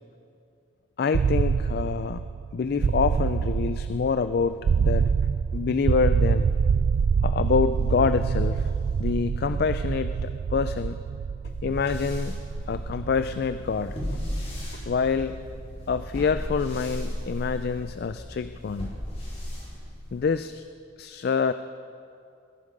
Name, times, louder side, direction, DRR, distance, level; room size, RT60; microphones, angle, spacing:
voice 1, 1.0-5.1 5.5-6.5 7.2-8.7 9.0-11.0 11.6-12.4 12.7-14.0 14.9-15.4 15.9-18.9 20.1-20.7 21.0-21.5, left 5 dB, 55° left, 11 dB, 0.3 m, -26 dB
sound 1, 1.1-17.0, right 6 dB, 65° right, 0.3 m, -26 dB
sound 2, 11.5-20.4, equal, 35° left, 4.1 m, -36 dB
20.0 x 11.0 x 5.3 m, 2.6 s
head